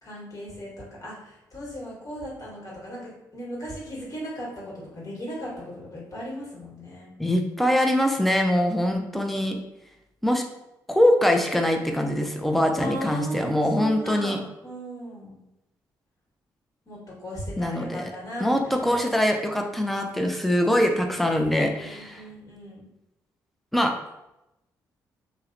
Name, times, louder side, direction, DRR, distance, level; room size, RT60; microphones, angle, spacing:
voice 1, 0.0-7.2 12.8-15.4 16.9-19.0 21.8-22.9, equal, 40° left, -5 dB, 1.3 m, -37 dB
voice 2, 7.2-9.6 10.2-10.4 10.9-14.4 17.6-18.1 18.4-22.2 23.7-23.9, left 1 dB, ahead, 3 dB, 0.4 m, -23 dB
2.7 x 2.0 x 2.4 m, 0.91 s
hypercardioid pair, 50°, 9 cm